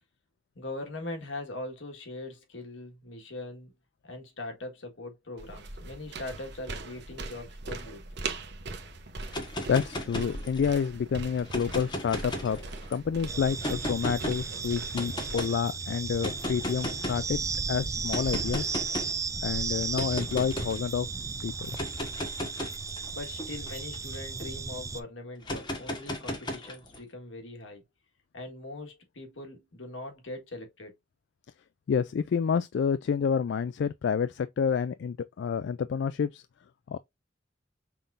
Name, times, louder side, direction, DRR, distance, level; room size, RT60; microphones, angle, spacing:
voice 1, 0.5-3.8 4.0-8.0 23.1-27.8 28.3-30.9, left 2 dB, 85° left, 1.5 m, -41 dB
sound 1, 5.4-15.4, right 3 dB, 60° right, 0.9 m, -40 dB
sound 2, 9.2-10.8 11.4-12.9 13.6-14.4 14.9-15.5 16.2-17.3 18.1-19.2 19.9-20.8 21.6-24.5 25.4-27.0, left 1 dB, 25° left, 1.2 m, -36 dB
voice 2, 9.7-12.6 12.9-17.4 17.7-18.6 19.4-21.1 21.4-21.5 31.9-36.4 36.9-37.0, left 6 dB, 65° left, 0.3 m, -28 dB
sound 3, 13.3-25.0, right 4 dB, 15° right, 0.3 m, -35 dB
5.8 x 3.6 x 2.5 m
head